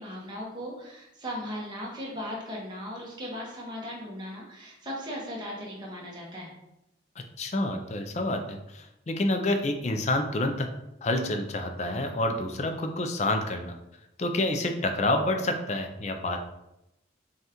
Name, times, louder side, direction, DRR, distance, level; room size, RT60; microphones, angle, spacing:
voice 1, 0.0-6.5, equal, 25° right, -4 dB, 1.0 m, -37 dB
voice 2, 7.4-10.7 11.0-13.8 14.2-16.4, left 1 dB, 35° left, 5 dB, 0.4 m, -28 dB
5.4 x 2.4 x 2.9 m, 0.88 s
head